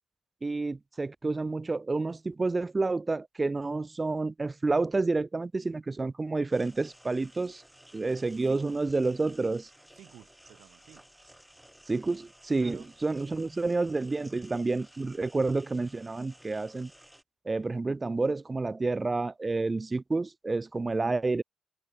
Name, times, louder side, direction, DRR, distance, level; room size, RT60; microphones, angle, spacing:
voice 1, 0.4-7.6 7.9-9.7 11.9-16.9 17.5-21.4, right 3 dB, 25° right, 0.5 m, -29 dB
sound 1, 6.5-17.2, equal, 5° right, 3.4 m, -56 dB
voice 2, 8.2-8.9 9.9-11.1 12.6-12.9, right 12 dB, 80° right, 2.5 m, -54 dB
cardioid pair, 90°, 0 cm